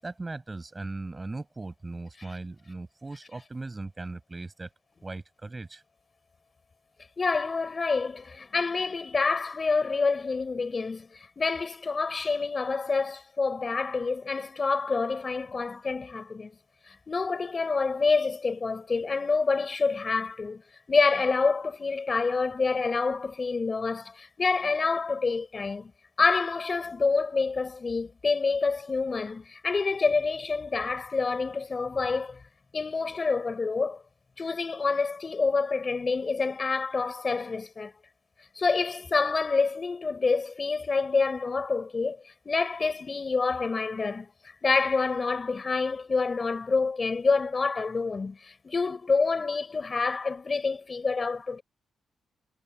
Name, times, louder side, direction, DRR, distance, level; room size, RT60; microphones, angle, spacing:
voice 1, 0.0-4.7 5.0-5.8, right 3 dB, 20° right, 7.5 m, -38 dB
voice 2, 7.2-16.5 16.9-20.6 20.9-25.9 26.2-32.4 32.7-34.0 34.4-37.9 38.5-51.6, left 4 dB, 30° left, 6.6 m, -27 dB
wide cardioid pair, 150°, 0 cm